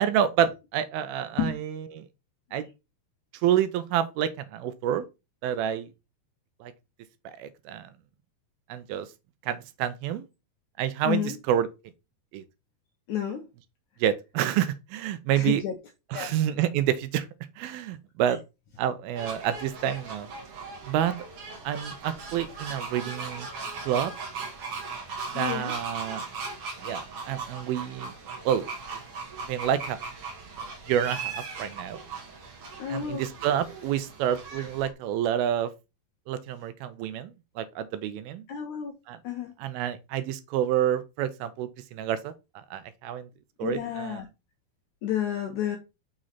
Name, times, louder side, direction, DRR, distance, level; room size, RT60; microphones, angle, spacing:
voice 1, 0.0-2.1 2.5-2.7 3.4-5.1 5.4-5.9 6.6-6.7 7.3-7.9 8.7-9.1 9.4-10.3 10.8-11.7 12.3-12.4 14.0-15.6 16.1-17.3 17.6-18.4 18.8-20.3 20.9-21.2 21.7-23.5 23.9-24.1 25.4-26.2 26.8-28.1 28.5-28.7 29.5-30.0 30.9-32.0 32.9-35.7 36.3-37.3 37.6-38.5 39.1-39.2 39.6-43.3 43.6-44.2, right 10 dB, 80° right, 2.4 m, -28 dB
voice 2, 11.0-11.3 13.1-13.4 15.3-15.8 16.1-16.3 25.3-25.8 32.8-33.2 38.5-38.9 39.2-39.5 43.6-44.3 45.0-45.8, left 9 dB, 75° left, 1.8 m, -30 dB
sound 1, 19.1-34.9, right 4 dB, 50° right, 1.9 m, -38 dB
6.2 x 3.8 x 5.7 m
omnidirectional pair, 4.5 m